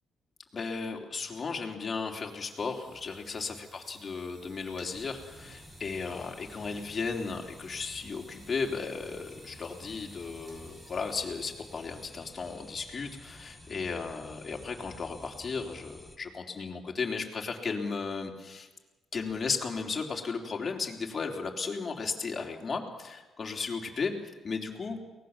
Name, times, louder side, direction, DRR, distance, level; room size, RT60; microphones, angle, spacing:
voice 1, 0.5-18.7 19.1-24.1 24.4-25.0, left 4 dB, 40° left, 1 dB, 3.6 m, -35 dB
sound 1, 1.7-14.5, right 3 dB, 55° right, 7.8 m, -58 dB
sound 2, 4.9-16.2, left 1 dB, ahead, 2.0 m, -51 dB
23.5 x 18.5 x 7.4 m, 1.2 s
cardioid pair, 90°, 0 cm